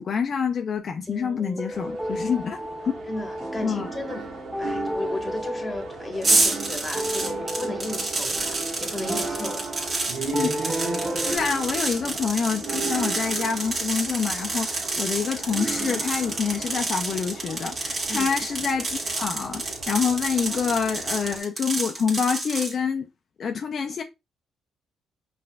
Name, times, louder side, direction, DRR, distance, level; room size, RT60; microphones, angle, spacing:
voice 1, 0.0-2.6 3.6-3.9 10.3-10.5 11.2-23.1 23.4-24.0, left 6 dB, 50° left, 0.4 m, -27 dB
voice 2, 1.1-1.7 3.1-4.3 4.6-9.6 18.1-18.3, left 2 dB, 20° left, 1.1 m, -35 dB
sound 1, 1.4-11.4, equal, 10° right, 0.6 m, -34 dB
sound 2, 1.7-21.4, right 4 dB, 70° right, 1.2 m, -36 dB
sound 3, 6.2-22.7, right 2 dB, 40° right, 1.5 m, -29 dB
5.6 x 2.5 x 2.2 m
cardioid pair, 90°, 0 cm